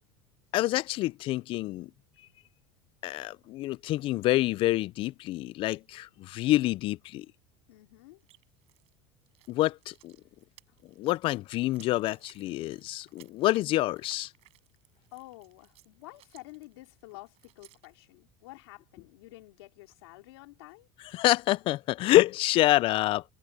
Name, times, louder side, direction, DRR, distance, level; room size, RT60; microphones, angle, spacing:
voice 1, 0.5-1.9 3.0-7.3 9.5-10.1 11.0-14.3 21.1-23.2, left 17 dB, 45° left, 0.4 m, -27 dB
voice 2, 7.7-8.2 15.1-20.9, left 21 dB, 90° left, 2.8 m, -50 dB
sound 1, 8.2-9.0 9.2-18.1, right 17 dB, 55° right, 6.7 m, -61 dB
supercardioid pair, 135°, 13 cm